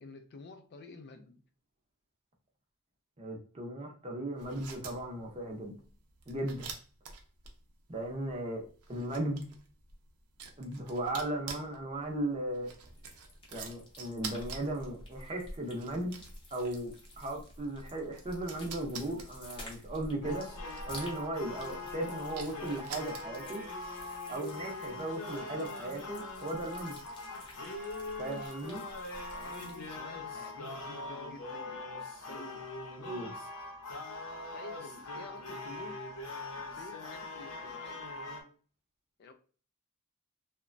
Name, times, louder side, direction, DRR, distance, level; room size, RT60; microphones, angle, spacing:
voice 1, 0.0-1.4 29.3-31.8 32.2-32.7 34.5-36.0 36.6-38.1 39.2-39.3, left 3 dB, 50° left, 0.3 m, -50 dB
voice 2, 3.2-5.7 6.3-6.7 7.9-9.5 10.6-12.7 13.5-16.1 16.5-20.5 20.9-23.6 24.3-27.0 28.2-28.8 33.0-33.3, right 1 dB, 30° right, 0.6 m, -37 dB
sound 1, 4.3-23.6, right 5 dB, 75° right, 0.6 m, -49 dB
sound 2, 12.8-30.0, left 1 dB, 25° left, 0.7 m, -51 dB
sound 3, 20.2-38.4, left 2 dB, 90° left, 0.7 m, -42 dB
2.9 x 2.1 x 2.5 m
head